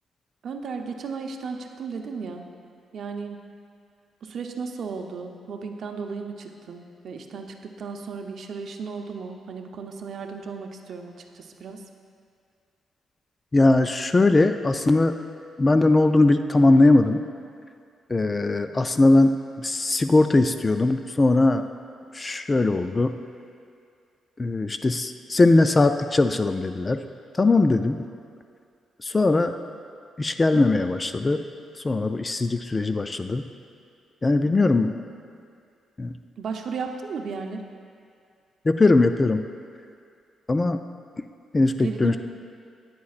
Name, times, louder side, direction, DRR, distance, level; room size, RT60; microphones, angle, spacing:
voice 1, 0.4-2.5 2.9-3.4 4.2-11.8 34.4-35.1 36.4-37.7 41.8-42.2, right 5 dB, 60° right, 4 dB, 0.7 m, -35 dB
voice 2, 13.5-15.2 15.6-17.2 18.1-21.7 22.1-23.1 24.4-27.0 27.4-28.1 29.0-29.5 30.2-31.4 31.8-33.4 34.2-34.9 36.0-36.1 38.6-39.4 40.5-40.8 41.2-41.3 41.5-42.2, left 2 dB, 25° left, 8 dB, 0.3 m, -20 dB
13.0 x 9.4 x 2.4 m, 2.3 s
cardioid pair, 120°, 0 cm